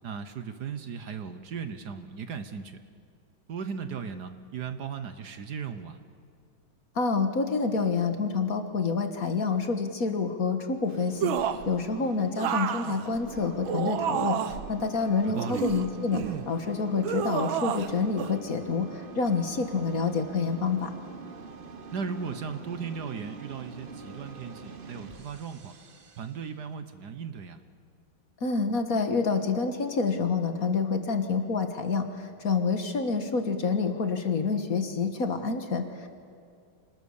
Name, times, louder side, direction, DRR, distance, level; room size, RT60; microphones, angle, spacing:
voice 1, 0.0-2.8 3.5-6.0 15.2-15.7 21.9-25.7 26.2-27.6, right 6 dB, 60° right, 9 dB, 1.5 m, -37 dB
voice 2, 7.0-20.9 28.4-36.1, left 4 dB, 45° left, 7 dB, 1.8 m, -28 dB
sound 1, 10.9-26.6, right 4 dB, 35° right, 0.9 m, -45 dB
sound 2, 11.2-11.7 12.4-14.7 15.3-16.4 17.0-17.9 18.2-18.3, right 9 dB, 80° right, 1.8 m, -30 dB
26.5 x 19.5 x 7.2 m, 2.4 s
omnidirectional pair, 2.2 m